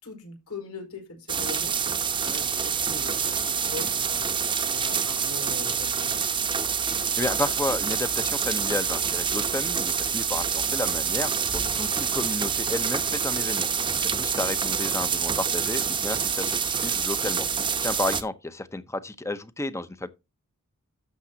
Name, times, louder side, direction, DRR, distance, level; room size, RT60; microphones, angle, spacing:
voice 1, 0.0-1.8 2.1-4.3 4.7-6.3, left 3 dB, 90° left, 4.8 m, -41 dB
sound 1, 1.3-18.2, right 6 dB, 20° right, 0.9 m, -27 dB
voice 2, 7.2-13.7 14.0-20.1, left 2 dB, 15° left, 0.8 m, -32 dB
12.0 x 7.1 x 2.8 m
head